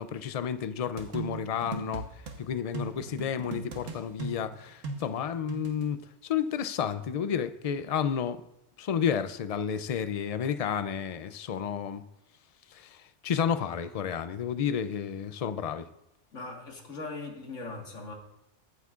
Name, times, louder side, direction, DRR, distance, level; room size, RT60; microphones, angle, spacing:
voice 1, 0.0-2.1 2.4-6.0 6.2-8.4 8.8-12.0 12.7-15.9, left 8 dB, 70° left, 12 dB, 0.3 m, -31 dB
sound 1, 1.0-2.4 2.7-5.9, right 4 dB, 90° right, 1.5 m, -39 dB
voice 2, 16.3-18.1, left 3 dB, 85° left, 1 dB, 2.0 m, -40 dB
22.5 x 8.1 x 2.4 m, 0.83 s
omnidirectional pair, 1.3 m